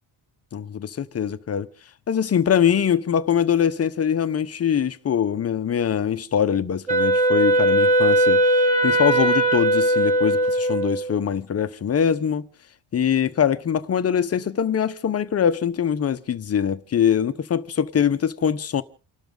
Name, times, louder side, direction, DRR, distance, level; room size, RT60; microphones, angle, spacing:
voice 1, 0.5-1.7 2.1-8.4 8.8-12.4 12.9-18.8, left 8 dB, 35° left, 0.9 m, -23 dB
Wind instrument woodwind instrument, 6.9-11.2, right 1 dB, 20° right, 2.7 m, -19 dB
29.5 x 12.5 x 3.8 m
cardioid pair, 145°, 41 cm